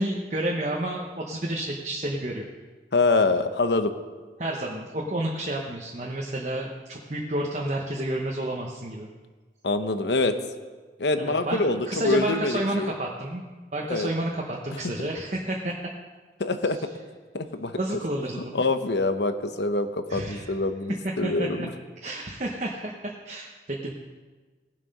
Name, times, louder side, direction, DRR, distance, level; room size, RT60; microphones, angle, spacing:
voice 1, 0.0-2.5 4.4-9.1 11.2-11.6 11.9-13.4 13.7-15.8 17.8-18.6 20.1-20.5 21.2-21.7 22.0-23.9, right 1 dB, 40° right, -1 dB, 1.1 m, -30 dB
voice 2, 2.9-3.9 9.6-10.3 11.0-12.9 13.9-14.1 15.0-15.1 16.4-16.8 17.3-17.7 18.5-21.7, left 3 dB, 80° left, 9 dB, 0.9 m, -25 dB
18.5 x 7.5 x 5.4 m, 1.4 s
head